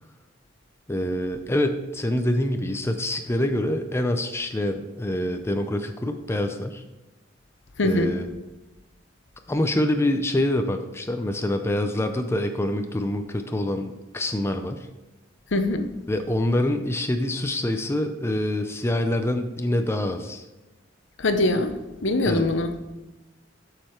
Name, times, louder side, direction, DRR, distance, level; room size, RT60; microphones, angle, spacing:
voice 1, 0.9-6.8 7.8-8.3 9.5-14.9 16.1-20.5 22.3-22.5, left 1 dB, 15° left, 6 dB, 0.5 m, -26 dB
voice 2, 7.8-8.1 15.5-15.9 21.2-21.7 22.0-22.8, left 2 dB, 70° left, 8 dB, 0.8 m, -22 dB
7.4 x 6.6 x 4.5 m, 1.1 s
head